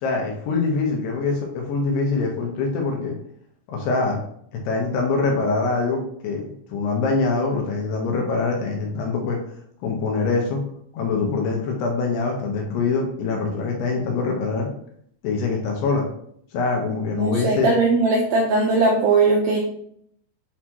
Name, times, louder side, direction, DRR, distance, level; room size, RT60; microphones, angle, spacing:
voice 1, 0.0-3.2 3.7-4.2 4.6-6.4 6.7-9.4 9.8-10.6 10.9-14.7 15.2-16.1 16.5-17.7, left 4 dB, 70° left, 0 dB, 2.8 m, -24 dB
voice 2, 17.1-19.6, right 3 dB, 90° right, -1 dB, 2.1 m, -19 dB
8.4 x 3.9 x 3.1 m, 0.66 s
omnidirectional pair, 5.4 m